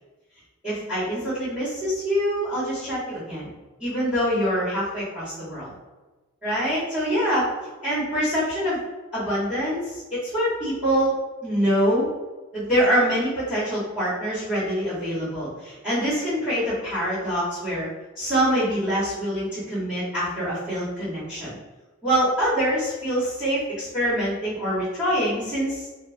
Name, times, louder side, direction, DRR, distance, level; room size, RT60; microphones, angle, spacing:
voice 1, 0.6-3.5 3.8-5.7 6.4-7.5 7.8-8.8 9.1-11.1 11.4-12.1 12.5-17.9 18.2-21.6 22.0-25.8, equal, 5° right, -11 dB, 0.9 m, -25 dB
3.0 x 2.0 x 2.4 m, 1.2 s
head